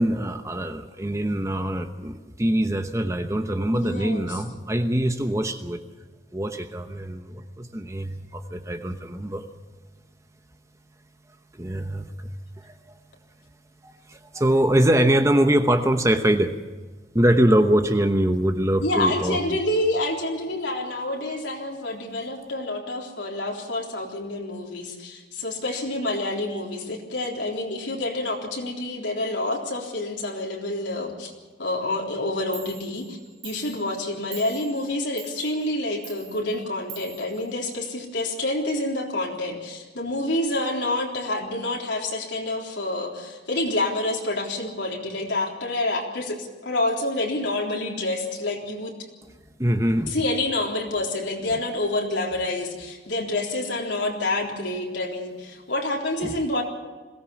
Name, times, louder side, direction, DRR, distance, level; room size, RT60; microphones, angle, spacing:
voice 1, 0.0-5.8 6.3-9.4 11.6-12.1 12.6-12.7 14.1-16.6 17.1-19.4 49.6-50.1 56.2-56.3, right 1 dB, 15° right, 7 dB, 1.0 m, -23 dB
voice 2, 3.7-4.4 18.8-31.3 31.6-33.2 33.4-48.9 50.1-56.6, left 2 dB, 80° left, -1 dB, 3.8 m, -28 dB
Clock, 32.2-32.3 32.5-38.2, right 9 dB, 65° right, 3.8 m, -45 dB
22.0 x 17.0 x 7.1 m, 1.3 s
head